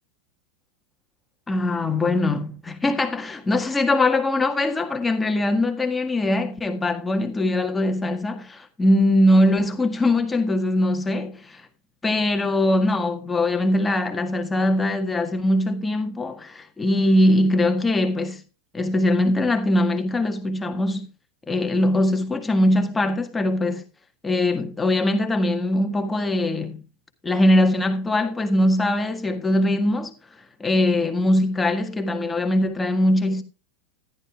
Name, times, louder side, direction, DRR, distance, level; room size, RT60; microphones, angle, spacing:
voice 1, 1.5-11.7 12.0-18.4 18.7-21.1 21.5-23.8 24.2-26.8 27.2-30.1 30.6-33.4, left 1 dB, 10° left, 1.7 m, -21 dB
14.5 x 11.5 x 2.4 m
figure-of-eight pair, 90°, 0 cm